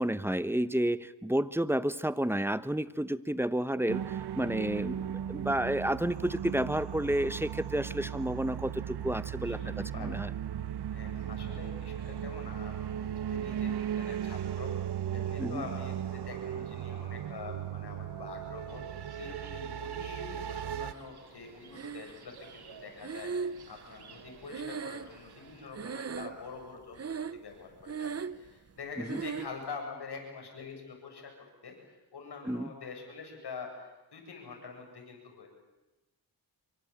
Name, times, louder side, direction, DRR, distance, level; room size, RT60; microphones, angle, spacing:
voice 1, 0.0-10.3 15.4-15.7 29.0-29.2 32.4-32.7, right 1 dB, 5° right, 15 dB, 1.0 m, -31 dB
sound 1, 3.9-20.9, right 10 dB, 90° right, 1.0 m, -37 dB
voice 2, 9.4-10.2 10.9-14.7 15.1-31.3 31.6-35.5, left 5 dB, 80° left, 2 dB, 8.0 m, -45 dB
sound 2, 18.7-25.7, right 6 dB, 70° right, 3.0 m, -55 dB
Breathing, 21.7-22.4 23.0-25.5 25.7-26.6 26.9-27.5 27.8-28.5 29.1-29.6, right 6 dB, 40° right, 0.9 m, -38 dB
27.0 x 24.5 x 8.9 m, 1.0 s
cardioid pair, 75°, 39 cm